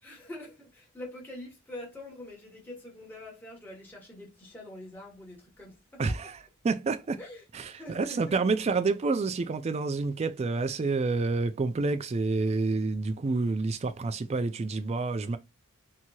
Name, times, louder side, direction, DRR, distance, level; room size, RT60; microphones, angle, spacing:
voice 1, 0.0-6.0 7.2-7.4 7.8-8.4, left 1 dB, 10° left, 1.0 m, -45 dB
voice 2, 6.0-7.2 7.5-15.4, right 3 dB, 30° right, 0.3 m, -28 dB
2.9 x 2.7 x 2.3 m
head